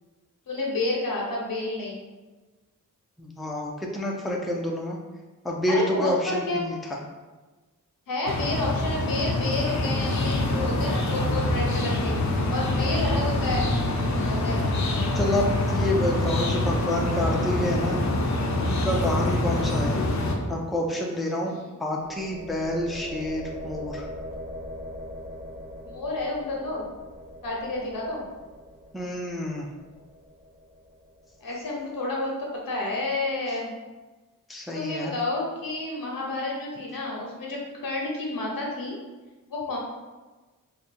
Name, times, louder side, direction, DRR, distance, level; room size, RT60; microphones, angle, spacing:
voice 1, 0.5-2.0 5.7-6.7 8.1-12.1 12.5-13.7 14.3-14.6 21.5-21.8 25.8-26.8 27.4-28.2 31.4-33.7 34.7-39.0 39.5-39.8, left 2 dB, 85° left, -3 dB, 1.0 m, -30 dB
voice 2, 3.2-5.0 5.4-7.0 15.1-18.0 18.6-20.0 20.5-24.1 28.9-29.7 34.5-35.2, left 1 dB, ahead, -1 dB, 0.4 m, -28 dB
sound 1, 8.3-20.4, left 2 dB, 55° left, 0.6 m, -25 dB
sound 2, 21.9-31.8, equal, 25° right, 1.1 m, -41 dB
2.7 x 2.6 x 4.2 m, 1.2 s
wide cardioid pair, 100°, 33 cm